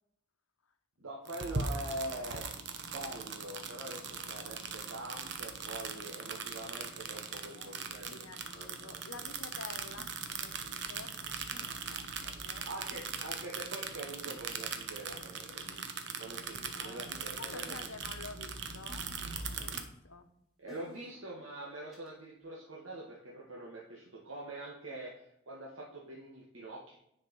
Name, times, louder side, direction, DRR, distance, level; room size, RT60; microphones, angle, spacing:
voice 1, 1.0-2.5 2.9-8.1 8.5-9.0 12.6-17.9 20.6-27.0, right 2 dB, 85° right, -4 dB, 1.7 m, -44 dB
sound 1, 1.2-19.8, right 5 dB, 60° right, 1.0 m, -40 dB
voice 2, 1.6-2.4 6.0-6.4 7.4-11.2 11.6-12.7 16.7-19.1 19.4-20.3 21.0-21.4, left 4 dB, 90° left, 8 dB, 1.0 m, -51 dB
sound 2, 5.9-6.1 7.4-7.5 8.1-8.2 9.1-9.2 10.0-10.1 11.5-11.6 12.9-13.0 14.3-14.4 15.1-15.2 15.5-15.6 17.2-17.3 17.7-17.8 18.9-19.3 19.7-19.8 20.7-21.1 21.9-22.1, left 2 dB, ahead, 2.5 m, -54 dB
9.9 x 5.2 x 5.4 m, 0.77 s
head